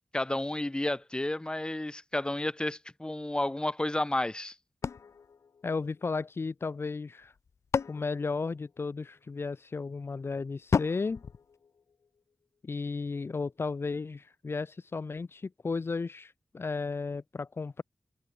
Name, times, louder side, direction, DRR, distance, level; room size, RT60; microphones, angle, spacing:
voice 1, 0.1-4.5, left 1 dB, 20° left, 7.3 m, -31 dB
sound 1, 4.8-6.4 7.2-9.2 10.7-12.3, left 6 dB, 90° left, 3.8 m, -35 dB
voice 2, 5.6-7.3 7.9-11.2 12.6-17.8, left 4 dB, 55° left, 4.2 m, -34 dB
wide cardioid pair, 85°, 5 cm